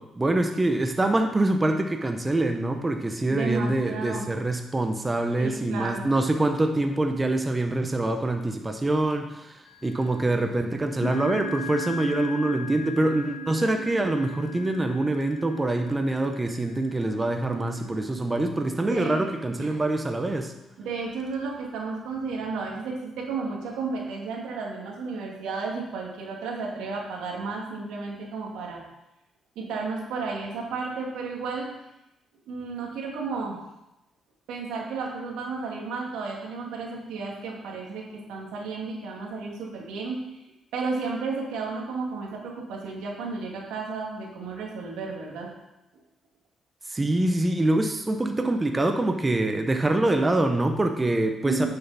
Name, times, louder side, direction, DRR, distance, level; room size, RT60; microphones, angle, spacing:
voice 1, 0.0-20.5 46.9-51.7, right 2 dB, 20° right, 5 dB, 0.9 m, -25 dB
voice 2, 3.3-4.3 5.4-6.1 18.8-19.2 19.6-19.8 20.8-28.8 29.6-31.7 32.5-33.6 34.5-40.2 40.7-45.5 51.4-51.7, right 4 dB, 90° right, -1 dB, 2.2 m, -33 dB
sound 1, 9.7-10.2 11.0-18.1, equal, 65° left, 1.6 m, -38 dB
10.5 x 7.0 x 4.1 m, 0.93 s
cardioid pair, 90°, 0 cm